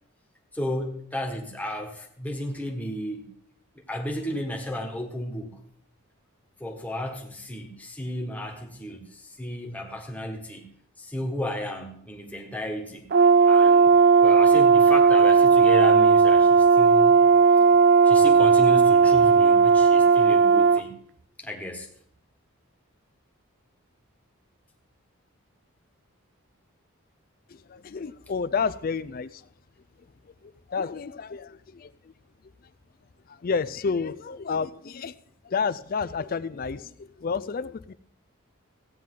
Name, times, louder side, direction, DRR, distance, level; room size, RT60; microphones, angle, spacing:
voice 1, 0.5-3.3 3.9-5.5 6.6-10.7 11.0-13.1 13.4-13.9 14.2-17.2 17.5-17.7 18.0-21.0 21.4-21.9, equal, 5° left, 2 dB, 1.4 m, -33 dB
Brass instrument, 13.1-20.8, right 5 dB, 45° right, 0.4 m, -16 dB
voice 2, 27.7-29.4 30.7-31.9 33.3-35.1 35.5-37.9, left 5 dB, 40° left, 15 dB, 0.4 m, -30 dB
15.5 x 9.1 x 3.8 m, 0.65 s
head